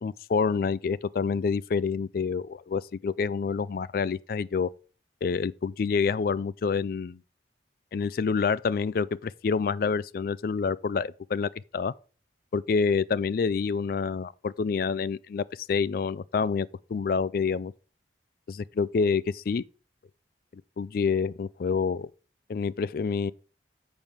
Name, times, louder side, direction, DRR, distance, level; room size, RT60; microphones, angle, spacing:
voice 1, 0.0-4.7 5.2-7.2 7.9-11.9 12.5-17.7 18.5-19.7 20.5-22.1 22.5-23.3, left 5 dB, 50° left, 0.3 m, -27 dB
7.3 x 6.0 x 5.0 m
head